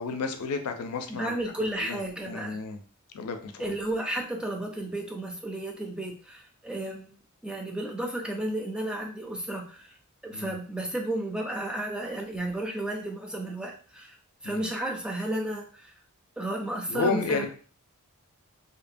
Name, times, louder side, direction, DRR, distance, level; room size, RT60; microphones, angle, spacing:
voice 1, 0.0-1.3 1.8-2.0 2.3-2.8 3.1-3.7 10.3-10.5 14.4-14.6 16.9-17.5, left 4 dB, 85° left, 7 dB, 0.4 m, -31 dB
voice 2, 1.1-2.6 3.6-7.2 7.4-10.0 10.2-14.2 14.4-15.9 16.4-17.5, right 1 dB, 5° right, 1 dB, 0.3 m, -33 dB
2.7 x 2.1 x 2.5 m, 0.41 s
head